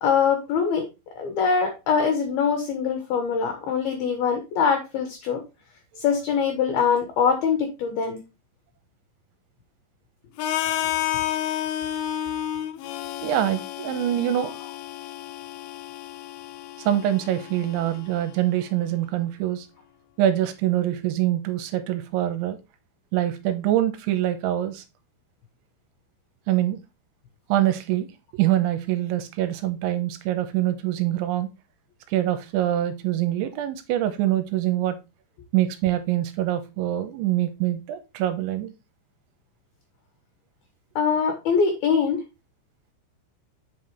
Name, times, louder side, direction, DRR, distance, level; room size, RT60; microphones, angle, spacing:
voice 1, 0.0-0.8 1.2-5.4 6.0-8.2 41.0-42.2, left 6 dB, 70° left, 2.5 m, -23 dB
Harmonica, 10.4-18.3, left 12 dB, 90° left, 3.4 m, -31 dB
voice 2, 13.2-14.5 16.9-19.7 20.2-22.6 23.1-24.8 26.5-26.8 27.5-31.5 32.1-35.0 35.5-38.7, right 13 dB, 85° right, 3.0 m, -24 dB
8.1 x 5.7 x 3.2 m
omnidirectional pair, 5.7 m